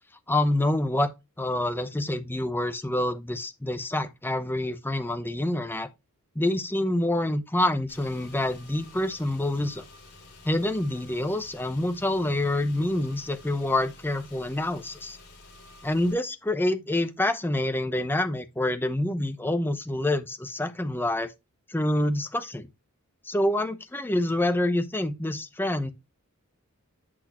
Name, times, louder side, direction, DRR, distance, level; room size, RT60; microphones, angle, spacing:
voice 1, 0.3-1.1 1.4-5.9 6.4-9.8 10.4-15.2 15.8-21.3 21.7-22.7 23.3-25.9, left 1 dB, 10° left, 0.7 m, -27 dB
Car / Engine, 7.9-16.1, left 2 dB, 55° left, 2.9 m, -50 dB
8.1 x 6.2 x 2.9 m
head